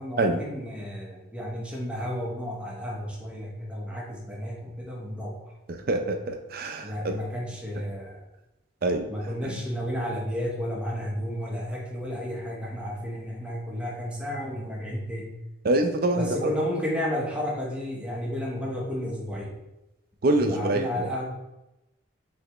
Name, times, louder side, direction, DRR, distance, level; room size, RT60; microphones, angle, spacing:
voice 1, 0.0-5.5 6.8-8.2 9.1-15.3 16.2-19.5 20.4-21.3, equal, 5° right, -3 dB, 0.8 m, -32 dB
voice 2, 5.9-7.2 8.8-9.1 9.4-9.6 15.6-16.5 20.2-21.1, right 2 dB, 45° right, 5 dB, 0.5 m, -25 dB
5.0 x 3.3 x 3.0 m, 0.95 s
head